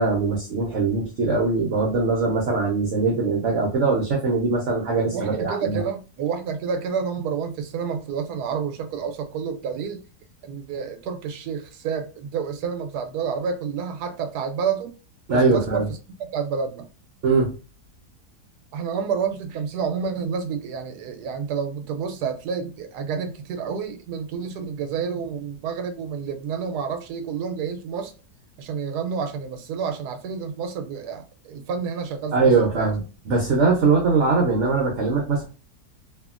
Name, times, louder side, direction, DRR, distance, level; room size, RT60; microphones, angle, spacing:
voice 1, 0.0-5.8 15.3-15.8 17.2-17.5 32.3-35.4, right 4 dB, 60° right, 0.8 m, -21 dB
voice 2, 5.1-10.0 10.4-14.9 15.3-16.9 18.7-28.1 28.6-32.9, right 6 dB, 80° right, 1.1 m, -29 dB
2.7 x 2.7 x 2.4 m
omnidirectional pair, 1.7 m